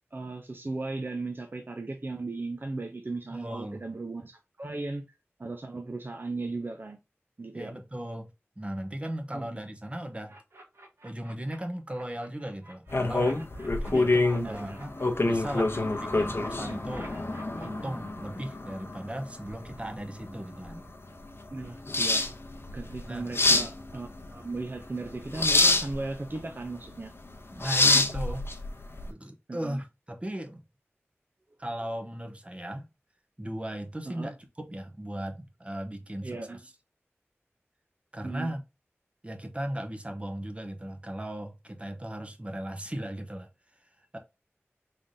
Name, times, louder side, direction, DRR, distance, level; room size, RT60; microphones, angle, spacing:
voice 1, 0.1-5.1 5.4-7.0 7.4-7.7 9.3-9.6 13.9-14.8 21.5-22.3 22.7-27.1 29.5-29.8 34.0-34.3 36.2-36.6 38.2-38.5, right 3 dB, 50° right, 0.5 m, -37 dB
voice 2, 3.3-3.8 7.5-8.3 8.6-10.3 11.0-13.4 13.8-14.9 15.2-17.1 17.6-20.9 23.1-23.3 27.5-28.5 29.1-30.6 31.6-32.9 33.4-36.6 38.1-38.6 39.2-43.5 44.1-44.2, right 1 dB, 25° right, 0.9 m, -37 dB
sound 1, 10.3-11.6 11.9-15.3 15.7-17.7, right 1 dB, 65° right, 1.3 m, -50 dB
sound 2, 12.9-29.1, left 2 dB, 60° left, 0.7 m, -27 dB
3.7 x 3.4 x 2.6 m
wide cardioid pair, 55°, 5 cm